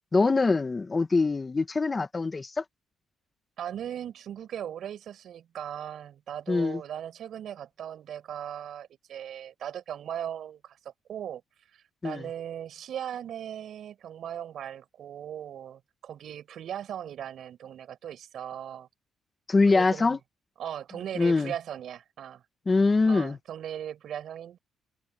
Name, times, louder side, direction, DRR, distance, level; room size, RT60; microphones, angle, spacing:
voice 1, 0.1-2.6 6.5-6.8 12.0-12.2 19.5-20.2 21.1-21.5 22.7-23.4, left 3 dB, 30° left, 1.2 m, -23 dB
voice 2, 3.6-11.4 11.7-18.9 19.7-20.2 20.6-22.4 23.1-24.6, right 10 dB, 70° right, 6.5 m, -38 dB
cardioid pair, 90°, 0 cm